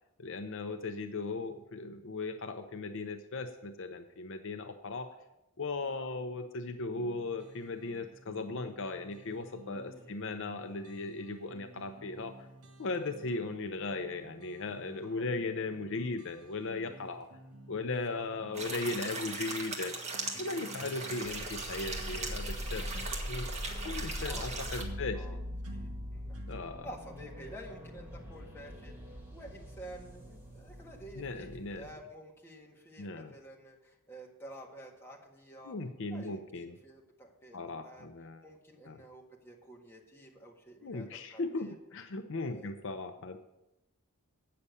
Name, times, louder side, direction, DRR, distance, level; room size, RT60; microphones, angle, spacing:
voice 1, 0.2-5.2 5.6-12.5 12.8-17.3 17.7-20.0 20.4-23.5 23.8-25.3 26.5-26.9 31.2-31.8 33.0-33.3 35.6-36.8 37.5-38.4 38.9-39.0 40.8-43.4, left 3 dB, 60° left, 8 dB, 0.6 m, -37 dB
sound 1, 6.9-26.6, right 2 dB, 75° right, 1.9 m, -53 dB
voice 2, 9.8-10.2 15.0-15.3 18.1-18.4 24.3-25.4 25.7-26.4 26.8-35.8 36.1-38.1 38.4-41.8 42.4-42.7, right 1 dB, 10° left, -1 dB, 1.7 m, -51 dB
sound 2, 18.5-24.8, right 3 dB, 30° right, 1.6 m, -39 dB
sound 3, 21.2-31.9, equal, 10° right, 1.6 m, -42 dB
8.6 x 6.7 x 8.3 m, 0.92 s
head